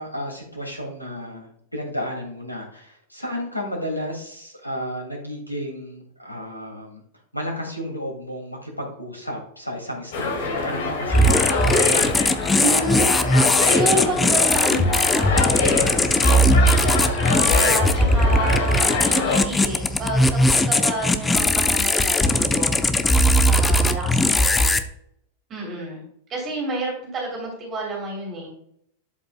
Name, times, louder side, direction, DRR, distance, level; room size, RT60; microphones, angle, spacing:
voice 1, 0.0-7.0 7.3-12.2, equal, 90° left, 1 dB, 2.4 m, -33 dB
sound 1, 10.1-19.4, left 4 dB, 55° left, 1.6 m, -25 dB
sound 2, 11.1-24.8, left 1 dB, 10° left, 0.6 m, -19 dB
voice 2, 12.5-13.1 13.6-16.8 17.2-20.4 20.6-22.8 23.5-24.8 25.5-26.0 26.3-28.5, right 2 dB, 30° right, -1 dB, 2.9 m, -29 dB
11.5 x 5.3 x 2.2 m, 0.69 s
figure-of-eight pair, 90°, 0 cm